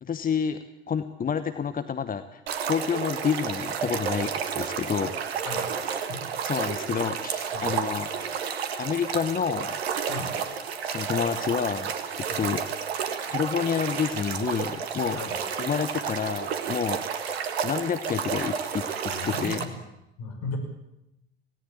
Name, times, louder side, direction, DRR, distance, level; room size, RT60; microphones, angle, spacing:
voice 1, 0.0-5.2 6.4-8.4 8.8-9.8 10.9-11.9 12.4-12.6 13.3-15.2 15.6-17.0 17.6-18.9 19.2-19.6, left 7 dB, 30° left, 11 dB, 1.0 m, -29 dB
sound 1, 2.5-19.6, right 7 dB, 75° right, 1.8 m, -31 dB
voice 2, 19.1-19.8 20.2-20.6, left 3 dB, 55° left, 4 dB, 5.7 m, -36 dB
18.5 x 17.5 x 8.8 m, 0.86 s
figure-of-eight pair, 60°, 31 cm